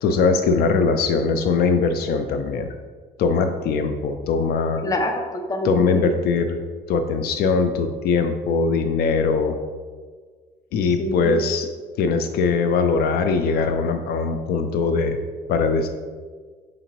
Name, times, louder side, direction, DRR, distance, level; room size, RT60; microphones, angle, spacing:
voice 1, 0.0-2.7 3.2-4.8 5.6-6.6 6.9-9.6 10.7-11.7 12.0-15.2 15.5-15.9, left 4 dB, 65° left, 7 dB, 0.4 m, -21 dB
voice 2, 4.8-6.1 11.0-11.4, left 1 dB, 20° left, 4 dB, 0.6 m, -26 dB
5.0 x 3.6 x 3.0 m, 1.5 s
cardioid pair, 110°, 17 cm